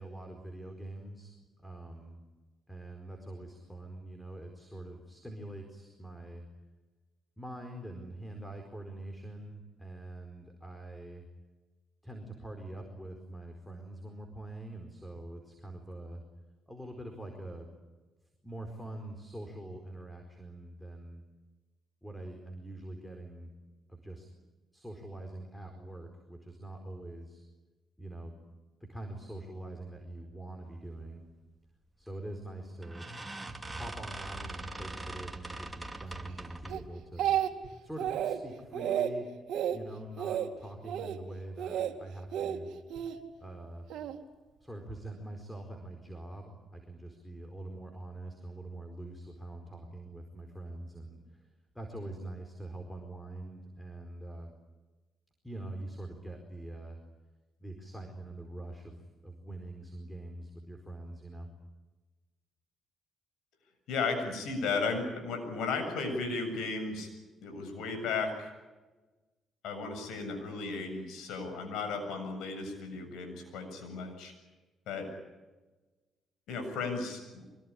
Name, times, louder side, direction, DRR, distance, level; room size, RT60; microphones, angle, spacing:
voice 1, 0.0-1.3 1.6-2.2 2.7-6.4 7.4-11.2 12.0-16.2 16.7-17.7 18.4-21.2 22.0-23.5 23.9-24.3 24.7-27.5 28.0-28.3 28.9-31.2 32.0-33.0 33.7-37.4 37.8-39.3 39.7-42.7 43.4-43.9 44.6-51.5 51.7-54.5 55.4-57.0 57.6-58.9 59.2-61.5, right 1 dB, 5° left, 4 dB, 4.5 m, -44 dB
sound 1, 32.1-32.3 32.8-36.9, right 2 dB, 10° right, 2.7 m, -42 dB
Speech, 36.7-37.7 38.0-38.4 38.7-39.1 39.5-39.8 40.2-40.5 40.8-41.2 41.6-41.9 42.3-43.1 43.9-44.2, right 10 dB, 85° right, 2.3 m, -31 dB
voice 2, 63.9-67.1 67.4-68.5 69.6-74.3 74.9-75.1 76.5-77.5, left 4 dB, 85° left, 6 dB, 7.4 m, -35 dB
24.5 x 22.0 x 10.0 m, 1.2 s
cardioid pair, 90°, 0 cm